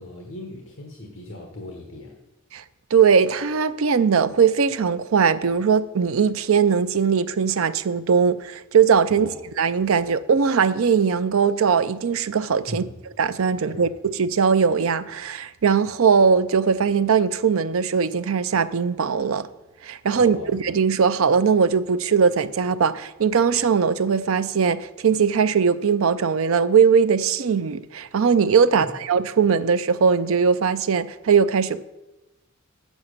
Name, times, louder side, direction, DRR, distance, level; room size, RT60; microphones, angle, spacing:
voice 1, 0.0-2.1 9.1-9.4 12.7-12.9 13.6-14.0 20.2-20.5 28.7-28.9, left 1 dB, 65° left, 1.2 m, -38 dB
voice 2, 2.9-9.3 9.6-12.8 13.2-13.9 14.2-19.5 19.8-31.8, right 6 dB, 80° right, 0.5 m, -20 dB
8.2 x 7.2 x 6.5 m
head